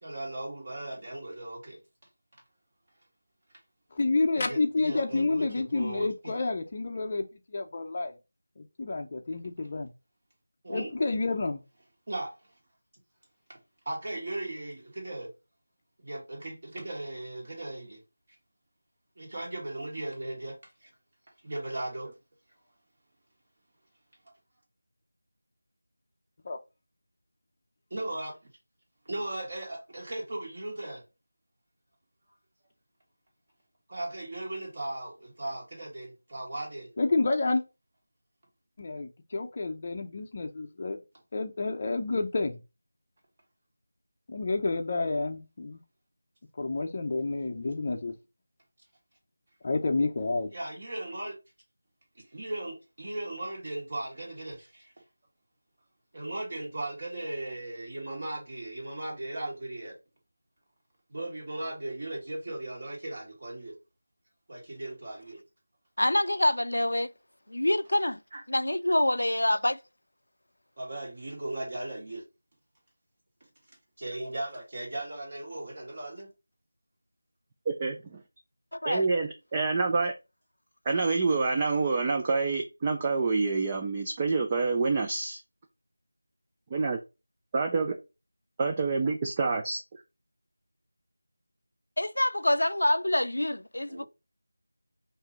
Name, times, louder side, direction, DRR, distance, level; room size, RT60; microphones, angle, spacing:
voice 1, 0.0-1.8 4.4-6.4 10.6-10.9 12.1-12.3 13.5-13.6 13.9-15.3 16.0-18.0 19.2-20.9 21.4-22.1 27.9-28.4 29.1-31.0 33.9-36.9 50.5-51.4 52.2-54.9 56.1-60.0 61.1-63.8 64.5-65.4 68.3-68.4 70.8-72.2 74.0-76.3 93.9-94.1, right 1 dB, 40° right, 2.0 m, -37 dB
voice 2, 3.9-8.1 8.6-9.9 10.7-11.6 26.4-26.6 37.0-37.6 38.8-41.0 41.3-42.6 44.3-45.8 46.6-48.1 49.6-50.5, left 3 dB, 30° left, 0.6 m, -29 dB
voice 3, 66.0-67.1 67.5-68.2 68.5-69.8 78.7-79.1 92.0-94.0, left 1 dB, 90° left, 0.5 m, -26 dB
voice 4, 77.7-78.2 78.8-80.1 80.9-85.4 86.7-87.0 87.5-87.9 88.6-90.0, right 4 dB, 15° right, 0.4 m, -27 dB
5.8 x 2.7 x 3.1 m
figure-of-eight pair, 175°, 0 cm